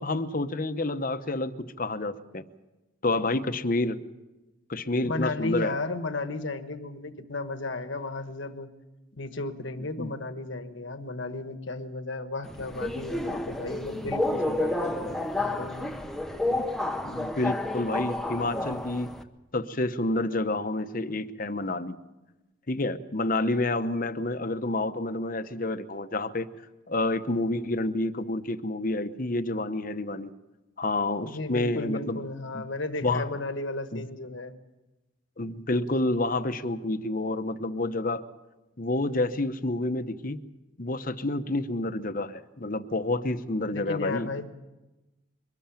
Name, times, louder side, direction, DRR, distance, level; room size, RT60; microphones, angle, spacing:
voice 1, 0.0-1.5 1.8-2.4 3.0-4.0 4.7-5.7 10.0-10.1 14.4-14.5 16.5-16.6 17.0-19.1 19.5-22.0 22.7-26.5 26.9-30.3 30.8-32.2 32.5-32.6 33.0-33.3 33.9-34.1 35.4-38.2 38.8-40.4 40.8-44.3, left 2 dB, 40° left, 10 dB, 0.9 m, -29 dB
voice 2, 5.0-8.7 9.2-15.9 31.2-34.5 43.7-44.5, left 2 dB, 65° left, 9 dB, 1.3 m, -34 dB
Subway metro underground, 12.4-19.2, left 2 dB, ahead, 0.8 m, -30 dB
23.0 x 13.0 x 9.0 m, 1.1 s
head